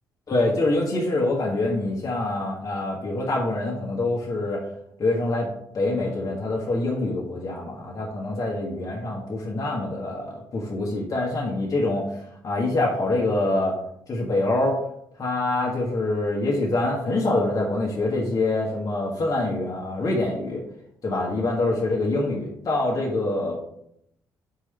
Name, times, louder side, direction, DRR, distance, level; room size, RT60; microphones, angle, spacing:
voice 1, 0.3-4.7 5.0-5.5 5.7-13.8 14.1-14.8 15.2-20.6 21.0-23.5, left 2 dB, 35° left, -3 dB, 1.3 m, -25 dB
4.8 x 4.8 x 4.4 m, 0.74 s
figure-of-eight pair, 45°, 10 cm